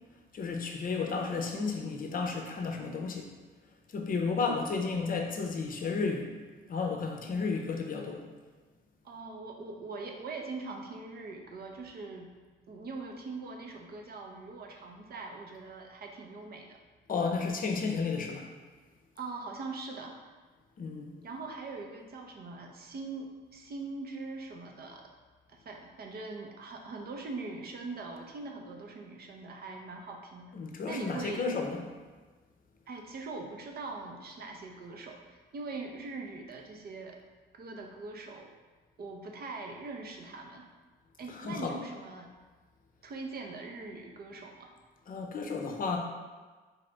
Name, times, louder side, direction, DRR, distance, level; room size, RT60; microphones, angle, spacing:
voice 1, 0.3-3.3 3.9-6.4 6.7-8.3 17.1-18.5 20.8-21.1 30.5-31.8 41.3-41.8 45.1-46.0, left 4 dB, 45° left, 2 dB, 0.6 m, -32 dB
voice 2, 9.0-12.3 12.7-16.8 19.2-20.3 21.2-25.1 25.5-30.5 30.9-31.5 32.9-37.2 37.5-38.5 39.0-40.7 41.2-42.3 43.0-44.7, right 3 dB, 50° right, 2 dB, 0.6 m, -42 dB
4.1 x 2.5 x 3.3 m, 1.3 s
cardioid pair, 90°, 20 cm